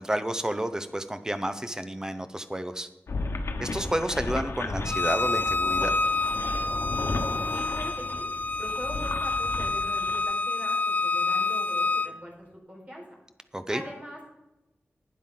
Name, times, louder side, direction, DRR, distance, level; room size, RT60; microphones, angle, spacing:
voice 1, 0.0-2.9 3.6-5.9 13.5-13.8, right 1 dB, 15° right, 10 dB, 0.9 m, -30 dB
sound 1, 3.1-10.2, left 3 dB, 85° left, 1.1 m, -34 dB
Bowed string instrument, 4.8-12.1, left 3 dB, 40° left, 0.6 m, -28 dB
voice 2, 7.5-8.3 8.6-13.0 13.7-14.2, equal, 35° right, -3 dB, 4.6 m, -42 dB
12.0 x 10.5 x 3.9 m, 0.98 s
wide cardioid pair, 90°, 4 cm